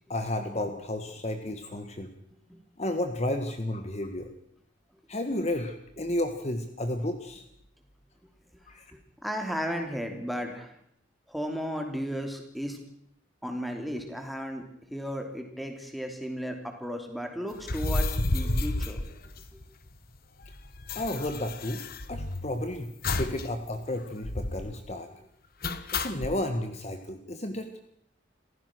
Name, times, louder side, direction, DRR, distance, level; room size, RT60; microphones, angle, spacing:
voice 1, 0.1-2.1 2.8-4.3 5.1-7.4 8.7-8.8 20.9-21.8 22.1-22.9 23.2-25.1 25.9-27.7, left 1 dB, 35° left, 6 dB, 1.6 m, -32 dB
voice 2, 9.2-10.7 11.3-12.8 13.4-19.0, equal, ahead, 4 dB, 3.1 m, -34 dB
sound 1, 17.6-19.9 20.2-20.3 20.4-22.5 23.0-23.5 23.7-23.8 24.2-24.7 25.6-26.4, left 2 dB, 50° left, 1.3 m, -31 dB
28.0 x 15.5 x 6.3 m, 0.73 s
head